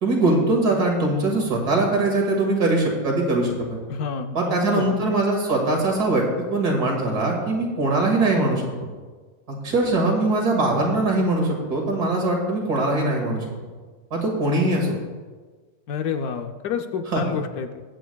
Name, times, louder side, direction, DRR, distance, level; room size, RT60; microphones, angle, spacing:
voice 1, 0.0-3.8 4.3-6.2 6.5-8.7 9.5-13.4 14.1-14.9 17.1-17.2, right 2 dB, 90° right, 0 dB, 2.5 m, -22 dB
voice 2, 3.9-5.0 15.9-17.8, left 6 dB, 75° left, 7 dB, 1.2 m, -29 dB
21.5 x 8.0 x 2.3 m, 1.4 s
omnidirectional pair, 1.6 m